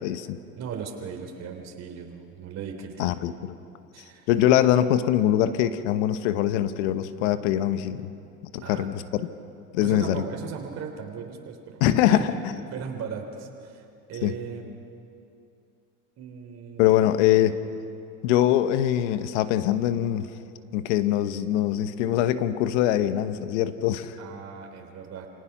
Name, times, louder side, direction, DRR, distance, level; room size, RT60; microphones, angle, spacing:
voice 1, 0.0-0.4 3.0-3.3 4.3-8.1 8.5-9.2 9.7-10.2 11.8-12.3 14.2-14.3 16.8-17.6 18.2-20.3 20.7-24.2, left 12 dB, 80° left, 12 dB, 1.2 m, -23 dB
voice 2, 0.6-3.1 3.9-4.3 8.6-8.9 9.8-11.8 12.1-13.8 14.1-14.6 16.2-17.1 24.2-25.3, right 6 dB, 45° right, 2 dB, 3.6 m, -37 dB
28.0 x 18.5 x 6.0 m, 2.6 s
supercardioid pair, 100°, 35 cm